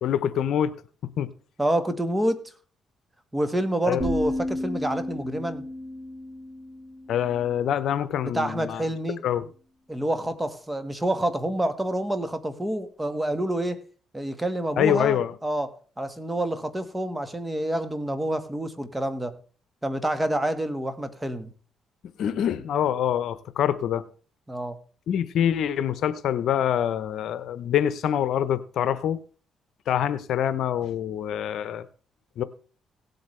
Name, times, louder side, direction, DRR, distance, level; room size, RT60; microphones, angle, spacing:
voice 1, 0.0-0.7 1.2-1.3 3.9-4.0 7.1-8.8 9.2-9.4 14.8-15.3 22.2-24.0 25.1-29.2 29.9-31.9 32.4-32.5, left 9 dB, 75° left, 0.8 m, -25 dB
voice 2, 1.6-2.4 3.3-5.6 8.2-9.2 9.9-13.8 14.1-19.3 19.8-21.5 24.5-24.8, right 1 dB, 10° right, 1.5 m, -28 dB
sound 1, 4.0-7.9, left 1 dB, 30° right, 5.9 m, -33 dB
17.5 x 8.0 x 3.3 m
cardioid pair, 90°, 0 cm